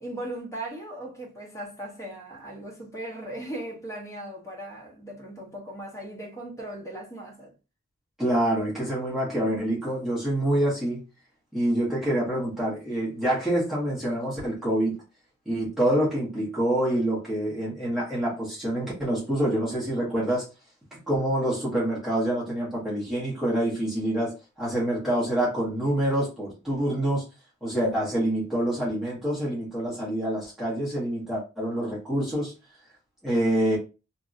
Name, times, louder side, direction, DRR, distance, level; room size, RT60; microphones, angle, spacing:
voice 1, 0.0-7.5, right 1 dB, 15° left, 1.0 m, -38 dB
voice 2, 8.2-11.0 11.5-14.9 15.4-20.5 20.9-27.2 27.6-32.5 33.2-33.8, right 1 dB, ahead, 1.3 m, -26 dB
2.9 x 2.6 x 2.5 m
head